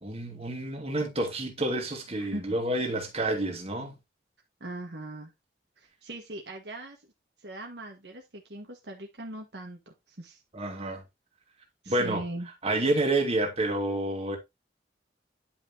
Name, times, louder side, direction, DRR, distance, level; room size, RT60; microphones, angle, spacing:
voice 1, 0.0-3.9 10.5-11.0 11.9-12.2 12.6-14.4, right 2 dB, 35° right, 2.2 m, -29 dB
voice 2, 4.6-5.3 5.8-7.1 7.4-10.4 10.8-11.0 11.8-12.5, right 1 dB, 65° right, 1.5 m, -40 dB
10.0 x 5.6 x 2.7 m
head